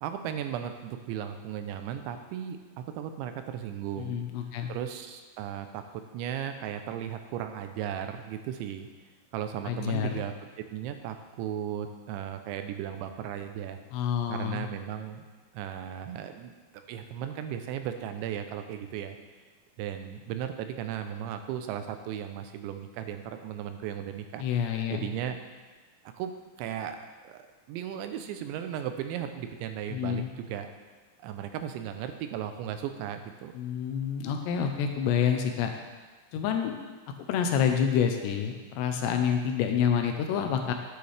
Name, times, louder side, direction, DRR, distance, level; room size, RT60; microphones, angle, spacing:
voice 1, 0.0-4.2 4.7-8.9 9.3-10.3 10.7-13.8 14.3-15.2 15.5-19.2 19.8-24.4 24.9-25.4 26.1-26.3 26.6-27.4 27.7-30.7 31.2-33.5, right 9 dB, 90° right, 7 dB, 3.0 m, -36 dB
voice 2, 4.0-4.7 9.7-10.2 13.9-14.7 24.4-25.1 29.9-30.3 33.5-35.7 36.3-36.8 37.3-40.7, left 8 dB, 80° left, 4 dB, 2.9 m, -28 dB
10.5 x 9.6 x 3.4 m, 1.3 s
omnidirectional pair, 5.1 m